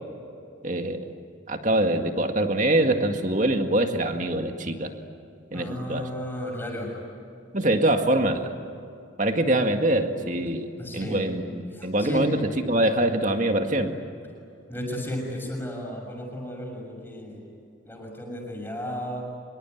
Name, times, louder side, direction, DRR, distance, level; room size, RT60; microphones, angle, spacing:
voice 1, 0.6-1.0 1.5-4.9 5.5-6.1 7.5-8.5 9.2-10.7 10.9-13.9, right 1 dB, 40° right, 5 dB, 2.0 m, -24 dB
voice 2, 5.5-6.9 10.8-11.2 11.8-12.2 14.7-17.4 17.8-19.2, left 1 dB, 10° left, 0 dB, 6.6 m, -34 dB
25.5 x 23.0 x 9.5 m, 2.5 s
head